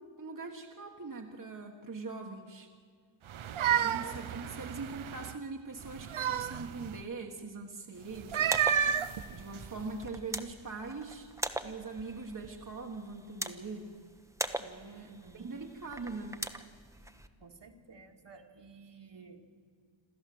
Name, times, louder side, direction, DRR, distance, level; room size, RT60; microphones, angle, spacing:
voice 1, 0.0-2.7 3.8-8.6 9.3-11.3 11.6-13.9 14.6-16.5, right 3 dB, 40° right, 2 dB, 1.5 m, -42 dB
sound 1, 3.3-5.3 5.8-7.0 8.1-10.0, right 9 dB, 75° right, 0.8 m, -31 dB
voice 2, 4.1-4.5 14.9-15.5 17.4-19.4, right 4 dB, 60° right, 3 dB, 2.2 m, -54 dB
sound 2, 8.3-17.3, right 1 dB, 5° right, 1.0 m, -42 dB
27.5 x 13.5 x 7.8 m, 2.2 s
wide cardioid pair, 105°, 48 cm